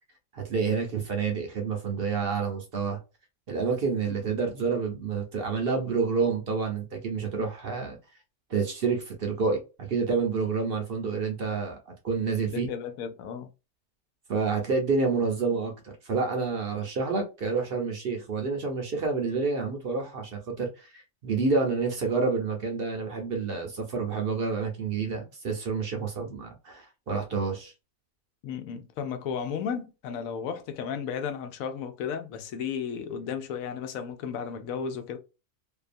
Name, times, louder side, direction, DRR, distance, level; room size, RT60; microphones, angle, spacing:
voice 1, 0.3-3.0 3.5-8.0 8.5-12.7 14.3-27.7, right 4 dB, 55° right, 0.7 m, -28 dB
voice 2, 12.5-13.5 28.4-35.2, left 7 dB, 85° left, 1.0 m, -34 dB
2.6 x 2.2 x 2.5 m
omnidirectional pair, 1.4 m